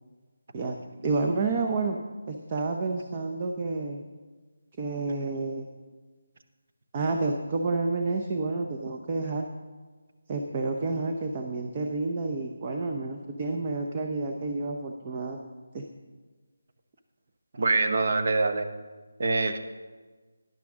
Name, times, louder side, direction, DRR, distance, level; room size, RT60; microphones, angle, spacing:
voice 1, 0.5-2.0 2.3-4.0 4.8-5.7 6.9-9.5 10.3-15.4 15.7-15.8, right 3 dB, 25° right, 3 dB, 0.7 m, -30 dB
voice 2, 17.5-18.7 19.2-19.6, right 3 dB, 50° right, 7 dB, 0.9 m, -24 dB
12.5 x 10.5 x 3.6 m, 1.4 s
figure-of-eight pair, 165°, 0 cm